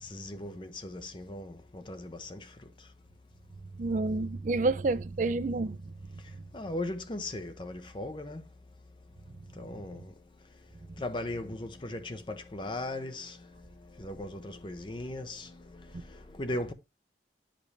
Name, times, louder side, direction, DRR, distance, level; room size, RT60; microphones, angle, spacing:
voice 1, 0.0-2.9 6.2-8.4 9.5-10.1 11.0-16.7, left 1 dB, 30° left, 0.6 m, -38 dB
voice 2, 3.8-5.8 15.9-16.0, right 3 dB, 45° right, 0.4 m, -29 dB
9.6 x 5.1 x 3.3 m
head